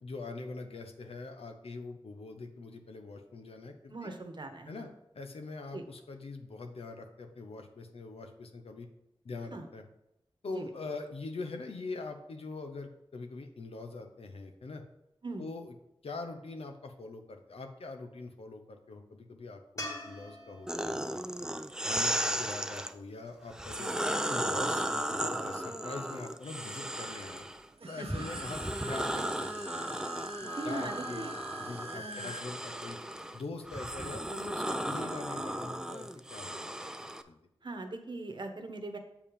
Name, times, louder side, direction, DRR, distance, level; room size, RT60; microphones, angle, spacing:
voice 1, 0.0-4.1 4.7-4.9 5.1-8.9 9.2-9.8 10.4-14.8 15.4-15.7 16.0-20.9 21.8-23.9 24.3-27.5 27.9-29.9 30.6-31.3 31.6-33.0 33.3-36.7 37.3-37.4, left 3 dB, 80° left, 5 dB, 0.9 m, -43 dB
voice 2, 3.9-4.8 5.7-5.8 9.5-9.7 10.5-10.7 15.2-15.4 27.8-28.4 30.4-31.3 31.9-32.3 37.6-39.0, right 2 dB, 50° right, 5 dB, 1.1 m, -40 dB
sound 1, 19.8-23.0 26.3-26.4, left 1 dB, 35° left, 1.6 m, -46 dB
sound 2, 20.7-22.9 23.5-27.6 28.1-37.2, right 1 dB, 5° right, 0.5 m, -35 dB
sound 3, 27.7-32.4, right 2 dB, 80° right, 1.1 m, -46 dB
7.1 x 4.9 x 5.2 m, 0.85 s
cardioid pair, 55°, 10 cm